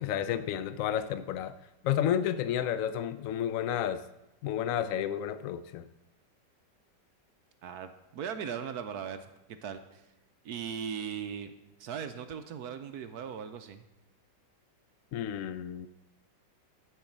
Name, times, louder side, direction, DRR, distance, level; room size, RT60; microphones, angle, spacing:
voice 1, 0.0-1.5 1.8-4.0 4.4-5.9 15.1-15.9, left 10 dB, 80° left, 12 dB, 0.7 m, -31 dB
voice 2, 7.6-10.0 10.4-11.5 11.8-13.8, right 7 dB, 70° right, 9 dB, 1.1 m, -39 dB
13.0 x 4.6 x 7.3 m, 0.96 s
omnidirectional pair, 1.9 m